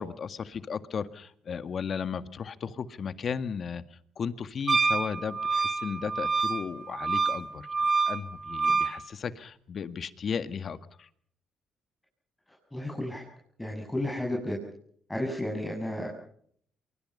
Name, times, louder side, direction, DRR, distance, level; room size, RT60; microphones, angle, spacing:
voice 1, 0.0-3.8 4.2-7.7 8.1-11.1, left 6 dB, 55° left, 12 dB, 1.8 m, -35 dB
Wind instrument woodwind instrument, 4.7-9.0, right 4 dB, 35° right, 2.9 m, -27 dB
voice 2, 12.5-13.3 13.6-14.6 15.1-16.1, left 1 dB, 10° left, 0 dB, 7.2 m, -32 dB
25.0 x 23.0 x 5.6 m, 0.64 s
supercardioid pair, 65°, 0 cm